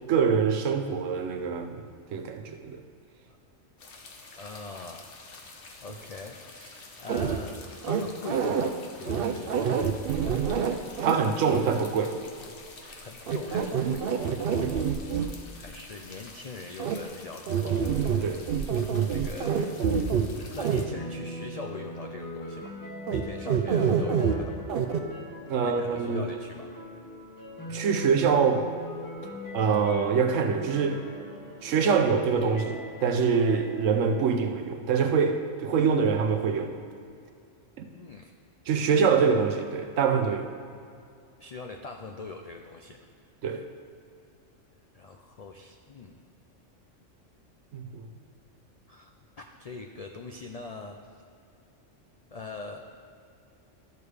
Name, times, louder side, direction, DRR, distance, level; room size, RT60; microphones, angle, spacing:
voice 1, 0.1-1.8 2.1-2.8 11.0-12.2 14.5-14.7 18.2-18.4 25.5-26.3 27.7-28.7 29.5-31.0 31.6-36.7 37.8-37.9 38.7-40.5 43.4-43.6 47.7-48.1, right 6 dB, 80° right, 6 dB, 1.1 m, -25 dB
sound 1, 3.8-20.9, left 3 dB, 50° left, 1.0 m, -48 dB
voice 2, 4.4-9.5 12.9-14.0 15.5-17.8 19.1-19.7 20.3-22.7 23.1-24.7 25.6-26.7 37.9-38.3 41.4-43.0 44.9-46.2 48.9-51.0 52.3-52.9, left 3 dB, 70° left, 3 dB, 0.3 m, -42 dB
sound 2, 7.1-7.4 7.8-8.7 9.1-11.2 11.5-11.6 13.3-15.3 16.8-16.9 17.5-18.2 18.5-20.3 20.6-20.8 23.1-23.2 23.5-24.3 24.7-25.0, right 7 dB, 60° right, 0.7 m, -26 dB
sound 3, 20.9-34.2, left 1 dB, 20° left, 0.8 m, -41 dB
12.5 x 6.7 x 3.3 m, 2.4 s
omnidirectional pair, 1.3 m